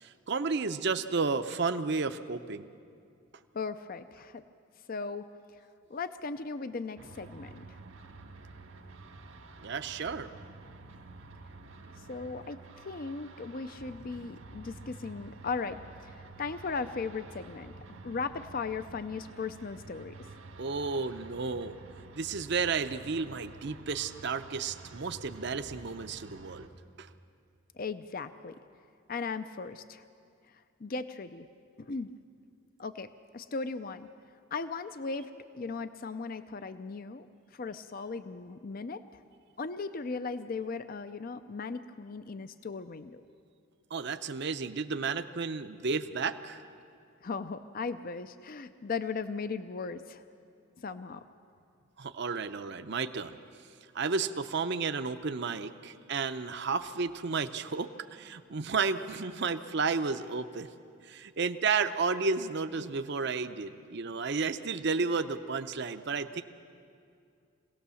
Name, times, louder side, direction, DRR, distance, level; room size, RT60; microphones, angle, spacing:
voice 1, 0.0-2.7 9.6-10.3 20.6-21.8 22.1-26.7 27.0-27.1 43.9-46.6 52.0-53.4 53.9-60.7 61.0-66.4, right 4 dB, 55° right, 9 dB, 0.7 m, -32 dB
voice 2, 3.5-4.4 4.9-5.3 5.9-7.6 12.1-20.1 27.8-28.6 29.1-30.1 30.8-31.5 31.8-32.1 32.8-34.1 34.5-35.3 35.5-37.3 37.5-39.0 39.6-43.2 47.2-50.2 50.8-51.2, left 4 dB, 45° left, 11 dB, 0.5 m, -37 dB
sound 1, 7.0-26.7, right 3 dB, 75° right, 1.6 m, -50 dB
25.5 x 17.5 x 7.0 m, 2.4 s
head